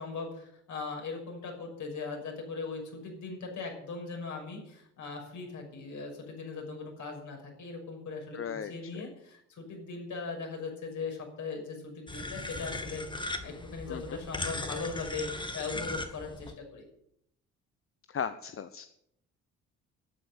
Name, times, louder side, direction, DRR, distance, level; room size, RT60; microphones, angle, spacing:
voice 1, 0.0-16.8, left 4 dB, 55° left, 2 dB, 6.1 m, -39 dB
voice 2, 8.3-9.1 13.9-14.2 18.1-18.9, left 7 dB, 40° left, 11 dB, 1.0 m, -37 dB
sound 1, 12.1-16.5, left 2 dB, 15° left, 2.1 m, -38 dB
12.5 x 9.0 x 9.0 m, 0.75 s
hypercardioid pair, 55°, 34 cm